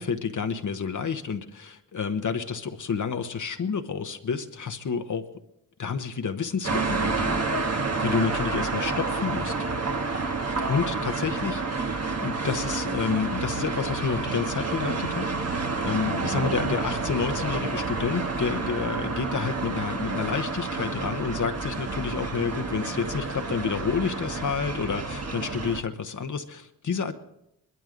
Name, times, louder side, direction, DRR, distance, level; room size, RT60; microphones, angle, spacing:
voice 1, 0.0-5.2 5.8-9.5 10.7-27.1, left 6 dB, 60° left, 7 dB, 1.1 m, -29 dB
sound 1, 6.6-25.8, right 3 dB, 45° right, 1.4 m, -29 dB
22.0 x 12.5 x 3.9 m, 0.82 s
cardioid pair, 60°, 35 cm